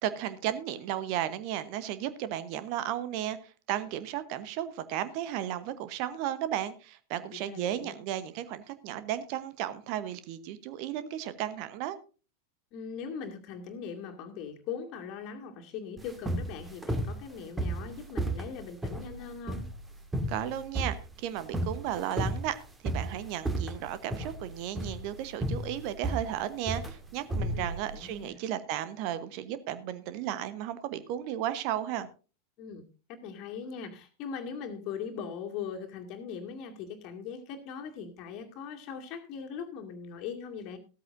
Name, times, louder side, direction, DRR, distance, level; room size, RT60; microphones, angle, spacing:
voice 1, 0.0-12.0 20.3-22.5 22.8-32.1, right 11 dB, 45° right, 13 dB, 1.0 m, -34 dB
voice 2, 7.3-8.0 12.7-19.6 27.5-28.4 32.6-40.8, left 6 dB, 40° left, 4 dB, 2.3 m, -40 dB
sound 1, 16.0-28.2, right 1 dB, 10° right, 1.9 m, -34 dB
15.0 x 13.5 x 2.6 m, 0.35 s
figure-of-eight pair, 90°, 0 cm